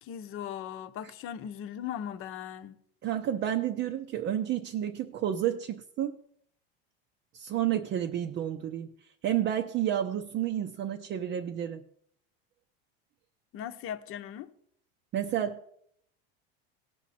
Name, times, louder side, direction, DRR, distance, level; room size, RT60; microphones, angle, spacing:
voice 1, 0.0-2.8 13.5-14.5, left 9 dB, 45° left, 0.9 m, -38 dB
voice 2, 3.0-6.2 7.3-8.9 9.2-11.8 15.1-15.7, right 11 dB, 35° right, 0.7 m, -30 dB
17.5 x 6.2 x 4.2 m
supercardioid pair, 115°, 30 cm